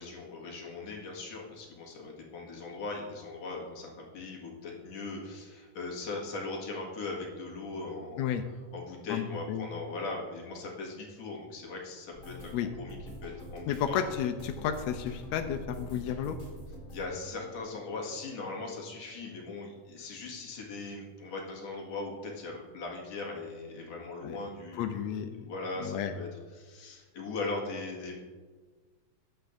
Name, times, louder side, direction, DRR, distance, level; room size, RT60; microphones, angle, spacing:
voice 1, 0.0-8.3 8.7-14.0 16.9-25.0 25.5-28.2, left 3 dB, 55° left, -2 dB, 2.9 m, -39 dB
voice 2, 9.1-9.7 12.5-12.7 13.7-16.4 24.2-24.4 24.7-25.5 25.8-26.1, left 9 dB, 80° left, 6 dB, 1.6 m, -32 dB
sound 1, 12.1-19.0 19.2-20.3 20.6-20.9 21.2-21.4, equal, 20° left, 2.6 m, -46 dB
21.0 x 8.0 x 2.6 m, 1.4 s
omnidirectional pair, 3.8 m